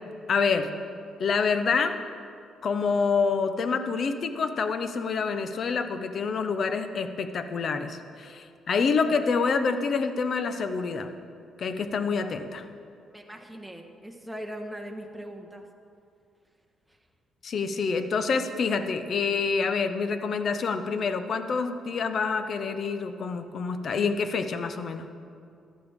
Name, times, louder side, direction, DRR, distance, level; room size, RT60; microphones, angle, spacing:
voice 1, 0.3-0.7 1.2-2.0 2.6-11.1 11.6-12.7 17.4-25.1, left 5 dB, 55° left, 9 dB, 0.8 m, -27 dB
voice 2, 13.1-15.7 16.9-17.0, equal, ahead, 0 dB, 1.4 m, -40 dB
14.5 x 11.0 x 3.7 m, 2.4 s
cardioid pair, 90°, 0 cm